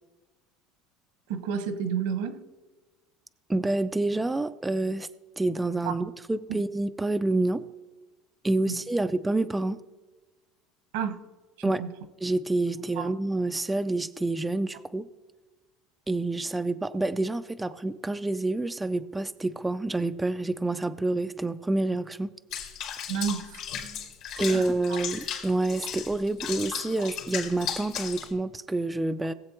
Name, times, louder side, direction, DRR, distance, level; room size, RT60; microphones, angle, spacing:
voice 1, 1.3-2.4 5.8-6.0 6.5-6.6 8.6-8.8 10.9-11.2 11.6-11.9 13.0-13.1 23.1-23.6 24.4-25.0 27.0-27.1, right 7 dB, 85° right, 8 dB, 1.3 m, -31 dB
voice 2, 3.5-5.1 5.4-7.6 8.4-9.8 11.6-11.8 12.2-15.1 16.1-22.3 24.4-29.3, right 2 dB, 10° right, 9 dB, 0.4 m, -28 dB
Water / Bathtub (filling or washing), 22.5-28.3, left 8 dB, 65° left, 2.4 m, -36 dB
19.0 x 7.7 x 3.0 m, 1.2 s
supercardioid pair, 125°, 0 cm